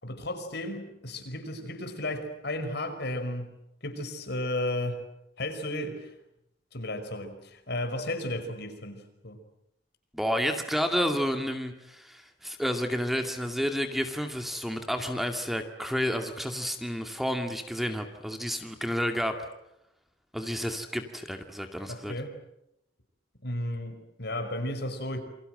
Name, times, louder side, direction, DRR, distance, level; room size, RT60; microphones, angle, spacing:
voice 1, 0.0-3.5 3.8-5.0 5.4-6.1 6.7-9.4 21.9-22.4 23.4-25.2, left 1 dB, 65° left, 7 dB, 5.4 m, -34 dB
voice 2, 10.1-19.4 20.3-22.1, equal, ahead, 6 dB, 2.2 m, -30 dB
28.5 x 24.5 x 7.9 m, 0.83 s
head